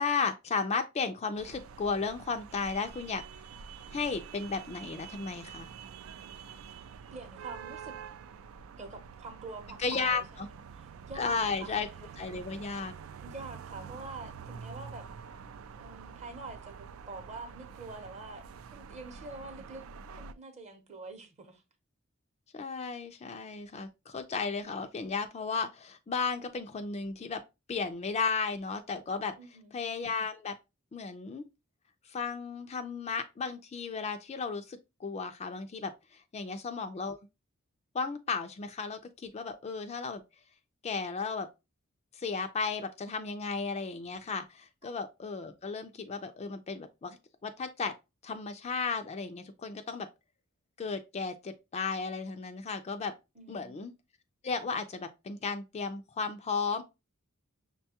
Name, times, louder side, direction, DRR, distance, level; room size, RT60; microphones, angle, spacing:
voice 1, 0.0-3.2 3.9-5.7 9.8-10.5 11.2-11.9 12.2-12.9 22.5-27.4 27.7-29.3 29.7-30.5 30.9-31.4 32.1-37.2 37.9-40.2 40.8-41.5 42.1-47.9 48.2-50.1 50.8-53.1 53.5-53.9 54.4-56.8, left 4 dB, 30° left, 0.3 m, -34 dB
sound 1, 1.4-20.3, right 6 dB, 70° right, 0.3 m, -47 dB
voice 2, 7.1-8.0 8.7-11.8 13.2-15.1 15.8-18.4 18.7-19.8 20.1-21.6 29.4-29.8 36.5-36.6 44.8-45.0 53.4-53.8, right 3 dB, 35° right, 0.8 m, -46 dB
6.0 x 2.2 x 2.8 m
head